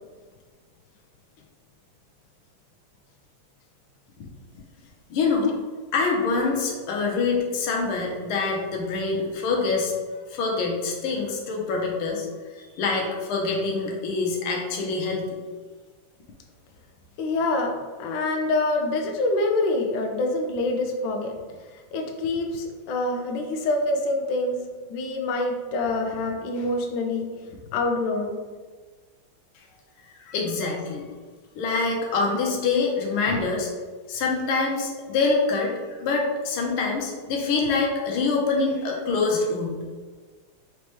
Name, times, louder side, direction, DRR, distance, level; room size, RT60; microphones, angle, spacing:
voice 1, 5.1-5.5 5.9-9.9 10.3-12.3 12.5-15.3 30.3-31.0 31.6-33.7 34.1-35.7 36.0-39.8, left 4 dB, 90° left, 0 dB, 1.7 m, -25 dB
voice 2, 17.2-17.7 18.0-21.3 21.7-24.6 24.9-27.3 27.7-28.4 30.2-30.3 33.3-33.4, left 2 dB, 70° left, 2 dB, 1.1 m, -26 dB
4.2 x 3.3 x 3.0 m, 1.4 s
omnidirectional pair, 2.3 m